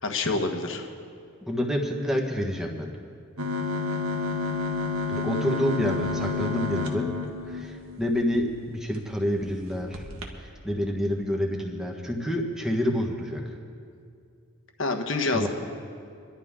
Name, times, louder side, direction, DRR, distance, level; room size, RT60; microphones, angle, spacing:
voice 1, 0.0-0.9 14.8-15.5, left 3 dB, 60° left, 4 dB, 1.3 m, -27 dB
voice 2, 1.5-2.9 5.1-7.1 7.5-10.1 10.3-13.5 15.3-15.5, equal, ahead, 0 dB, 1.3 m, -28 dB
sound 1, 3.4-8.4 8.9-9.0 9.3-9.5 9.9-10.3, left 3 dB, 75° right, 1.5 m, -30 dB
26.0 x 12.0 x 3.7 m, 2.4 s
head